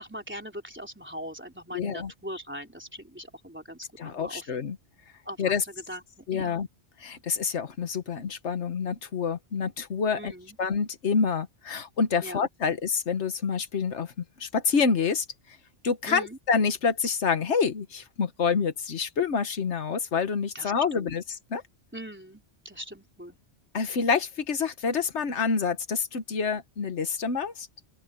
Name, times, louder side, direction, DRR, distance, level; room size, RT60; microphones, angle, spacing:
voice 1, 0.0-4.5 5.3-6.6 10.1-10.6 12.2-12.7 16.1-16.4 20.5-21.1 21.9-23.4, equal, 10° right, 3.5 m, -41 dB
voice 2, 1.7-2.1 4.0-4.8 5.4-5.6 6.3-6.7 7.0-10.3 10.6-14.1 14.4-15.3 15.8-21.2 21.5-21.6 23.7-27.7, left 5 dB, 90° left, 1.5 m, -27 dB
open air
omnidirectional pair, 1.1 m